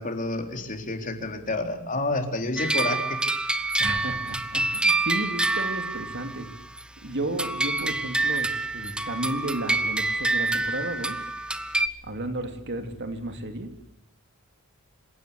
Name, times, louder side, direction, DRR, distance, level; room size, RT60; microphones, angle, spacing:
voice 1, 0.0-3.2, left 2 dB, 35° left, 5 dB, 3.8 m, -29 dB
sound 1, 2.6-6.8 7.4-11.9, right 2 dB, 5° right, 1.1 m, -27 dB
voice 2, 3.8-6.5 7.0-11.2 12.0-13.7, right 1 dB, 50° right, 7 dB, 3.1 m, -33 dB
27.0 x 17.0 x 8.5 m, 0.75 s
head